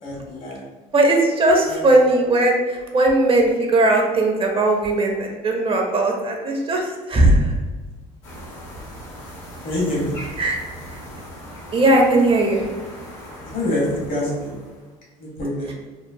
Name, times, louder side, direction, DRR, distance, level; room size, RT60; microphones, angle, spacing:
voice 1, 0.0-0.6 1.7-1.8 9.6-10.2 13.5-14.5 15.2-15.7, left 1 dB, 65° left, -4 dB, 1.2 m, -25 dB
voice 2, 0.9-7.5 10.4-10.6 10.9-11.0 11.7-12.6 15.7-15.8, right 2 dB, 35° right, 1 dB, 0.5 m, -18 dB
sound 1, 8.2-14.9, equal, 90° left, 0.9 m, -39 dB
2.9 x 2.0 x 2.5 m, 1.3 s
supercardioid pair, 85°, 16 cm